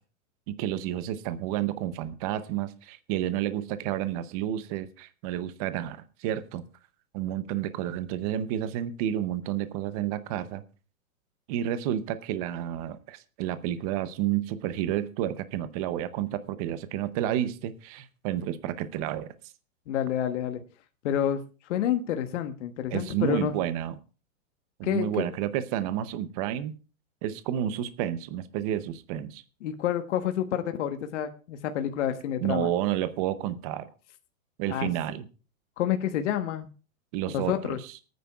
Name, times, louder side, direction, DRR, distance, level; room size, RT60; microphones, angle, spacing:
voice 1, 0.5-6.6 7.1-10.6 11.5-19.3 22.9-23.9 24.8-26.8 27.2-29.4 32.4-33.9 34.6-35.3 37.1-37.8, right 11 dB, 25° right, 13 dB, 0.7 m, -30 dB
voice 2, 19.9-20.6 21.0-21.4 21.6-23.5 24.8-25.3 29.6-32.7 34.7-34.9 35.8-36.7 37.3-37.8, left 10 dB, 55° left, 7 dB, 1.3 m, -28 dB
23.5 x 9.4 x 2.3 m, 0.34 s
hypercardioid pair, 155°, 41 cm